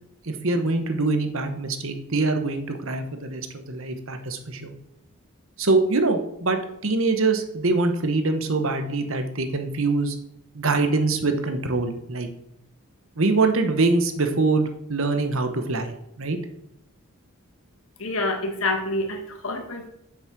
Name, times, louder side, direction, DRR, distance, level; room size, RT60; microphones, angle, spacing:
voice 1, 0.2-4.7 5.6-10.2 10.5-12.3 13.2-16.4, right 3 dB, 60° right, 6 dB, 1.2 m, -24 dB
voice 2, 18.0-19.9, left 2 dB, 65° left, 4 dB, 1.8 m, -27 dB
7.6 x 7.3 x 6.0 m, 0.78 s
head